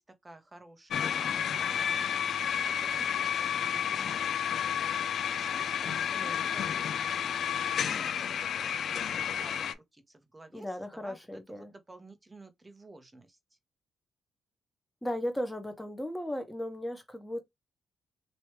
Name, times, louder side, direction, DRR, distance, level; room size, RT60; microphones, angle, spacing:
voice 1, 0.0-1.3 1.8-2.0 2.7-8.2 8.6-10.0 10.3-10.7 11.0-11.2 11.9-13.3, right 2 dB, 20° right, 1.0 m, -52 dB
sound 1, 0.9-9.7, left 8 dB, 65° left, 0.4 m, -31 dB
voice 2, 10.5-11.7 15.0-17.4, left 1 dB, 5° left, 1.2 m, -36 dB
3.1 x 3.0 x 3.0 m
cardioid pair, 90°, 0 cm